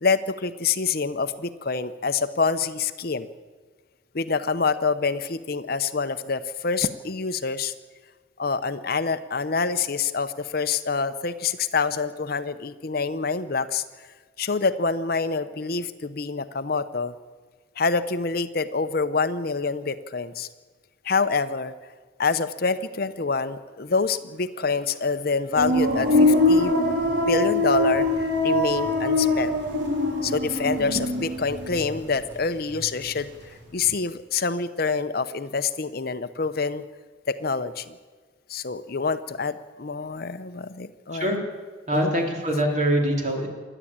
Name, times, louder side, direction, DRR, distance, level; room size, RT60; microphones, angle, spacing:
voice 1, 0.0-3.3 4.1-7.7 8.4-14.1 14.4-17.1 17.8-20.5 21.0-21.7 22.2-26.7 27.3-28.1 28.4-29.5 30.2-33.3 33.7-36.8 37.3-37.9 38.5-41.4 41.9-42.1, left 4 dB, 50° left, 11 dB, 0.7 m, -26 dB
sound 1, 25.6-32.4 32.7-33.4, left 2 dB, 60° right, 3.9 m, -23 dB
voice 2, 41.9-43.5, equal, 40° right, 1 dB, 3.5 m, -23 dB
27.5 x 11.0 x 8.7 m, 1.4 s
head